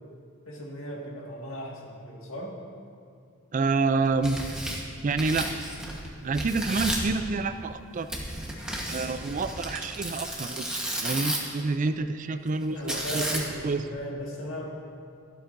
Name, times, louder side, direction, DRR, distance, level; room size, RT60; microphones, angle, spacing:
voice 1, 0.5-2.6 12.7-14.7, equal, 75° left, -2 dB, 1.8 m, -37 dB
voice 2, 3.5-4.4 5.0-5.5 5.9-6.0 6.2-8.1 8.9-13.9, right 3 dB, 35° right, 10 dB, 0.3 m, -28 dB
Tearing, 4.0-6.1 6.3-7.1 8.1-11.6 12.9-13.7, right 1 dB, 5° right, 1.1 m, -33 dB
13.0 x 12.5 x 2.6 m, 2.3 s
head